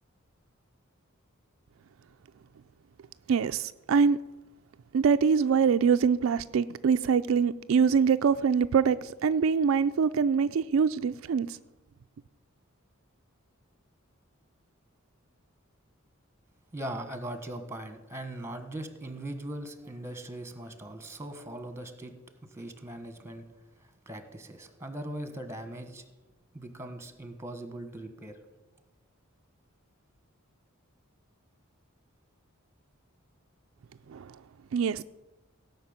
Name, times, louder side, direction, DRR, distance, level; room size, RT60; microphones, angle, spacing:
voice 1, 3.3-4.2 4.9-11.6 34.1-34.3 34.7-35.0, right 6 dB, 65° right, 10 dB, 0.4 m, -24 dB
voice 2, 16.7-22.1 22.4-23.4 24.1-26.0 26.5-28.4, right 1 dB, 15° right, 9 dB, 1.4 m, -40 dB
17.0 x 5.9 x 8.8 m, 1.1 s
head